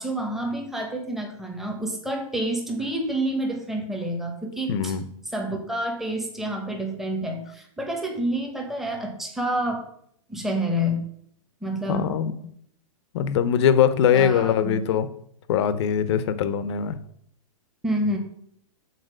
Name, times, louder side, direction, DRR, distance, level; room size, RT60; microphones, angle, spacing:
voice 1, 0.0-4.9 5.3-9.8 10.3-11.0 11.6-12.1 14.1-14.8 17.8-18.2, right 1 dB, ahead, 2 dB, 1.1 m, -28 dB
voice 2, 4.7-5.1 11.9-12.3 13.1-15.1 15.5-17.0, left 8 dB, 50° left, 13 dB, 0.8 m, -21 dB
6.6 x 4.1 x 6.3 m, 0.70 s
hypercardioid pair, 145°, 18 cm